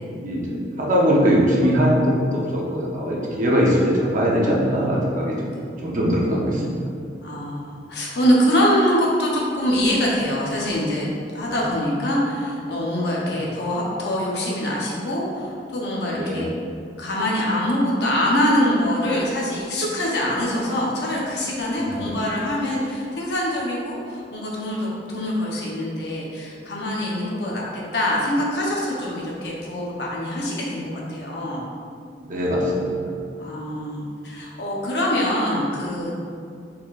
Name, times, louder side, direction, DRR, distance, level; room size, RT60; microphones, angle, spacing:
voice 1, 0.2-6.6 11.5-11.6 13.3-13.4 16.1-16.5 32.2-33.2, equal, 45° right, -4 dB, 0.9 m, -21 dB
voice 2, 7.2-16.4 17.0-31.6 33.4-36.1, equal, 65° left, -4 dB, 0.9 m, -24 dB
4.4 x 4.2 x 2.5 m, 2.4 s
head